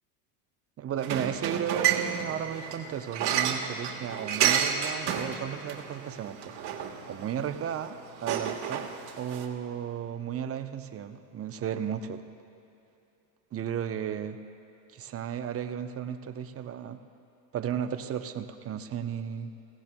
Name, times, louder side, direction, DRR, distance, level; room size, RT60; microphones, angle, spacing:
voice 1, 0.8-8.9 9.2-12.2 13.5-14.4 14.9-17.0 17.5-19.5, right 9 dB, 30° right, 8 dB, 0.7 m, -34 dB
sound 1, 1.0-9.5, right 8 dB, 50° right, 1.5 m, -31 dB
21.5 x 16.5 x 2.2 m, 2.8 s
hypercardioid pair, 90°, 49 cm